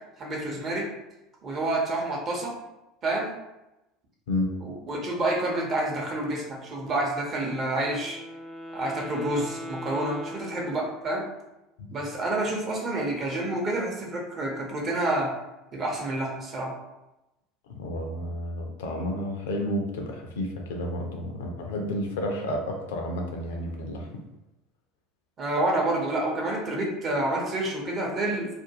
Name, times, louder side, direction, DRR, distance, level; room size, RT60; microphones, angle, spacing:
voice 1, 0.2-0.9 1.4-2.6 3.0-3.3 4.6-8.2 8.7-11.3 11.9-15.3 15.7-16.7 25.4-28.5, right 1 dB, 35° right, -1 dB, 0.7 m, -28 dB
Wind instrument woodwind instrument, 7.7-11.4, equal, 5° right, 0.3 m, -40 dB
voice 2, 17.7-24.2, left 1 dB, 70° left, 2 dB, 0.4 m, -31 dB
2.5 x 2.2 x 2.8 m, 0.96 s
figure-of-eight pair, 70°, 0 cm